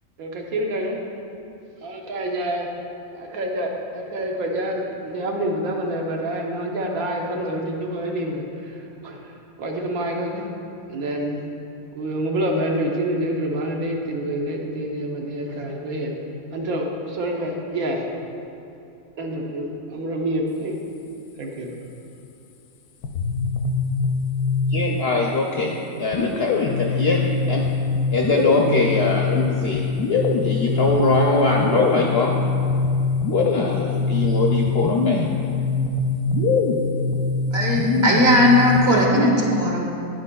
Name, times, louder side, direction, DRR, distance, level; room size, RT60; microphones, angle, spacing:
voice 1, 0.2-1.0 1.8-2.7 3.1-9.3 9.6-10.5 10.9-11.4 11.9-16.2 16.5-18.0 19.2-20.7 21.4-21.7, right 1 dB, 80° right, 0 dB, 1.3 m, -27 dB
sound 1, 23.0-25.2 26.1-39.1, left 4 dB, 90° left, 1.0 m, -23 dB
voice 2, 24.7-25.7 26.0-27.6 28.1-29.8 30.1-32.4 33.3-35.3, left 3 dB, 65° left, -1 dB, 0.6 m, -22 dB
voice 3, 37.5-39.9, left 1 dB, 50° right, -2 dB, 1.3 m, -17 dB
9.5 x 7.7 x 2.3 m, 2.7 s
omnidirectional pair, 1.5 m